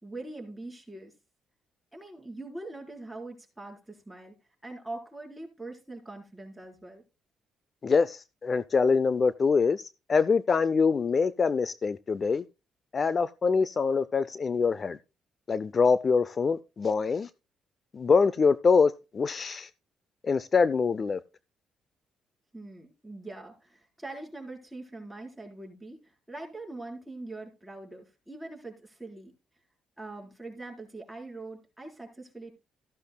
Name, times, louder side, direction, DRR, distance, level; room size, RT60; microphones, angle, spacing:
voice 1, 0.0-1.1 1.9-4.4 4.6-7.0 22.5-29.3 30.0-32.5, right 2 dB, 5° right, 4.1 m, -43 dB
voice 2, 7.8-12.4 12.9-15.0 15.5-17.3 17.9-19.7 20.2-21.2, left 5 dB, 40° left, 0.4 m, -24 dB
14.0 x 11.5 x 2.2 m
cardioid pair, 90°, 0 cm